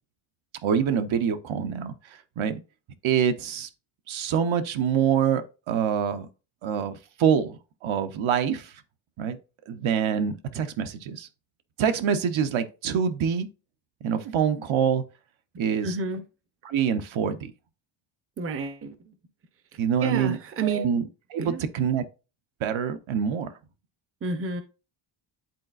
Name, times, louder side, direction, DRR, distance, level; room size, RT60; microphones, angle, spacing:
voice 1, 0.6-2.6 3.0-3.7 4.1-6.3 6.6-8.7 9.2-9.4 9.7-11.3 11.8-13.5 14.0-15.1 15.6-15.9 16.6-17.5 19.8-20.4 20.6-21.0 21.3-22.0 22.6-23.5, right 7 dB, 70° right, 0.8 m, -25 dB
voice 2, 15.8-16.2 18.4-19.1 20.0-20.9 21.4-21.6 24.2-24.6, right 4 dB, 30° right, 0.6 m, -30 dB
10.5 x 4.0 x 2.4 m
wide cardioid pair, 155°, 50 cm